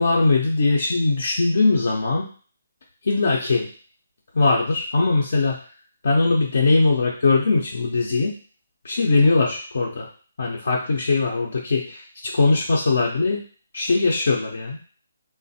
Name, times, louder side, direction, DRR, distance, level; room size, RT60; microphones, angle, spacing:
voice 1, 0.0-2.2 3.1-3.7 4.3-5.6 6.0-8.3 8.8-10.0 10.4-13.4 13.7-14.8, left 3 dB, 65° left, -3 dB, 0.5 m, -20 dB
3.2 x 2.1 x 2.6 m, 0.41 s
figure-of-eight pair, 145°, 0 cm